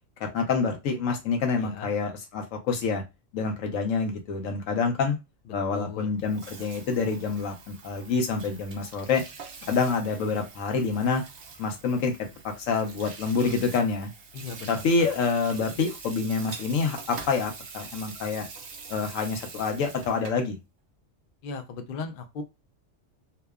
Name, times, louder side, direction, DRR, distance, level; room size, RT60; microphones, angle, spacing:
voice 1, 0.2-3.0 3.3-5.2 5.5-9.2 9.7-11.2 11.6-12.2 12.6-14.1 14.7-18.5 18.9-20.6, left 4 dB, 90° left, 1.1 m, -27 dB
voice 2, 1.6-1.9 5.7-6.1 14.3-15.1 21.4-22.4, left 4 dB, 60° left, 0.6 m, -37 dB
Water tap faucet / Sink (filling or washing), 6.2-20.5, right 5 dB, 60° right, 0.7 m, -44 dB
2.8 x 2.1 x 2.3 m
omnidirectional pair, 1.3 m